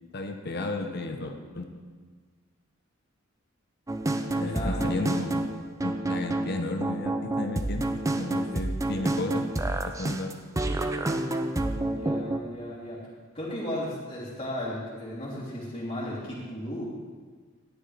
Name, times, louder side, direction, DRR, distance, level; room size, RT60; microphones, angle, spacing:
voice 1, 0.1-1.7 4.3-5.5 5.8-9.5 9.9-10.3, left 2 dB, 50° left, 4 dB, 0.9 m, -33 dB
sound 1, 3.9-12.4, right 2 dB, 15° right, 0.5 m, -29 dB
voice 2, 4.3-4.9 11.8-13.0 13.3-16.9, left 1 dB, 25° left, -9 dB, 3.1 m, -35 dB
13.0 x 10.0 x 3.4 m, 1.5 s
head